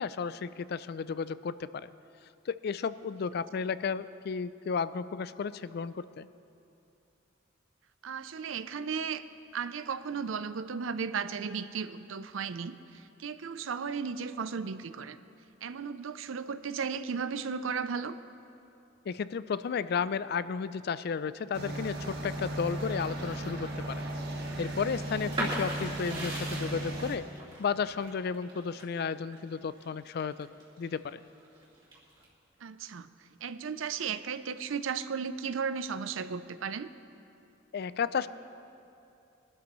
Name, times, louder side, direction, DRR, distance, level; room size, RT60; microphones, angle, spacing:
voice 1, 0.0-1.9 2.5-6.3 19.1-24.0 24.6-27.3 27.6-30.5 30.8-31.2 37.7-38.3, left 6 dB, 50° left, 15 dB, 0.3 m, -33 dB
voice 2, 8.0-9.3 9.5-15.2 15.6-18.2 32.6-33.1 33.4-36.9, right 6 dB, 80° right, 13 dB, 0.5 m, -35 dB
sound 1, 21.5-27.2, right 1 dB, 55° right, 1.5 m, -36 dB
sound 2, 25.3-31.0 31.4-32.2, right 1 dB, 25° right, 2.6 m, -38 dB
22.5 x 12.5 x 3.1 m, 2.7 s
head